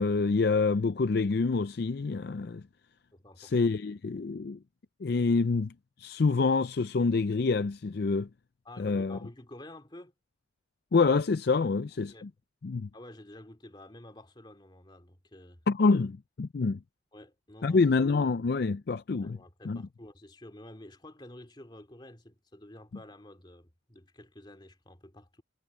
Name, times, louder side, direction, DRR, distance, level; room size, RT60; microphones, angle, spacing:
voice 1, 0.0-2.6 3.4-4.6 5.0-5.7 6.0-8.3 8.8-9.2 10.9-12.3 12.6-12.9 15.7-16.8 17.6-19.4 19.7-19.8, left 4 dB, 50° left, 0.4 m, -27 dB
voice 2, 3.1-3.5 8.6-10.1 11.6-11.7 12.1-12.3 12.9-15.6 17.1-17.8 19.2-25.4, left 1 dB, 25° left, 2.5 m, -50 dB
head